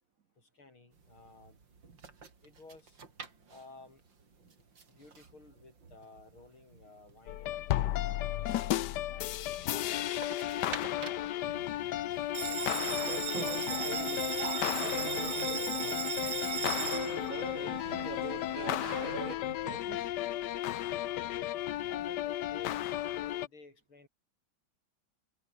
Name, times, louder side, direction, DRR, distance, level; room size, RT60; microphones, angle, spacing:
voice 1, 0.4-1.7 2.4-3.0 3.5-4.0 4.9-7.6 8.4-8.8 9.1-11.9 21.9-24.1, left 3 dB, 80° left, 7.1 m, -55 dB
sound 1, 0.9-16.8, right 5 dB, 60° right, 3.8 m, -51 dB
sound 2, 7.3-23.5, left 13 dB, 65° left, 1.2 m, -34 dB
Bell, 12.3-19.3, right 8 dB, 75° right, 2.5 m, -37 dB
voice 2, 13.0-14.4 14.7-16.0 16.7-20.1, right 6 dB, 45° right, 1.4 m, -44 dB
omnidirectional pair, 2.3 m